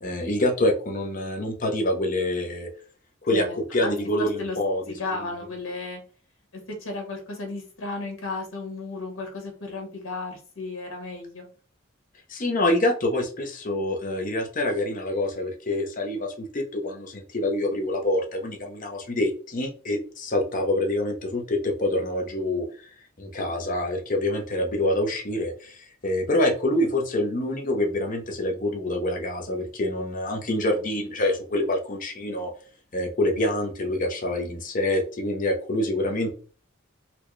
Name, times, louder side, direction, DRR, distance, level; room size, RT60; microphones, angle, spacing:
voice 1, 0.0-2.7 3.2-3.4 3.7-4.8 12.3-22.7 23.2-32.5 32.9-36.3, left 1 dB, 40° left, 2 dB, 0.7 m, -26 dB
voice 2, 3.8-4.6 5.0-6.0 6.5-11.4, left 3 dB, 75° left, 1 dB, 1.3 m, -34 dB
4.2 x 2.2 x 3.1 m, 0.41 s
head